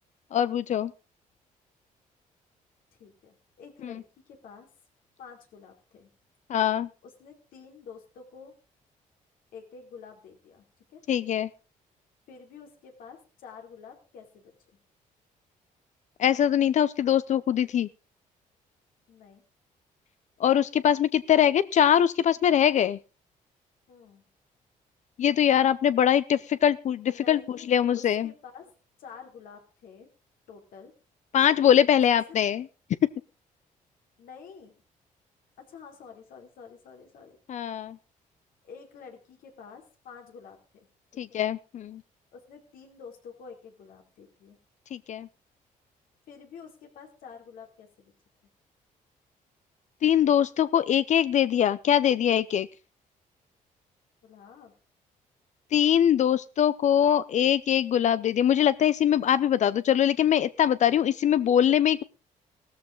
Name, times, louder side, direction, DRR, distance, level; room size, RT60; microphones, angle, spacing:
voice 1, 0.3-0.9 3.8-3.9 6.5-6.9 11.1-11.5 16.2-17.9 20.4-23.0 25.2-28.3 31.3-32.7 37.5-38.0 41.2-42.0 44.9-45.3 50.0-52.7 55.7-62.0, left 9 dB, 55° left, 15 dB, 0.6 m, -22 dB
voice 2, 3.0-4.7 5.2-6.1 7.0-8.5 9.5-10.6 10.9-11.0 12.3-14.5 19.1-19.4 23.9-24.3 27.1-28.7 29.0-30.1 30.5-30.9 32.1-32.2 34.2-34.7 35.6-37.4 38.6-40.9 41.3-41.4 42.3-44.6 46.3-48.1 54.2-54.7, left 6 dB, 85° left, 3 dB, 4.3 m, -48 dB
16.0 x 13.5 x 3.8 m, 0.32 s
cardioid pair, 110°, 14 cm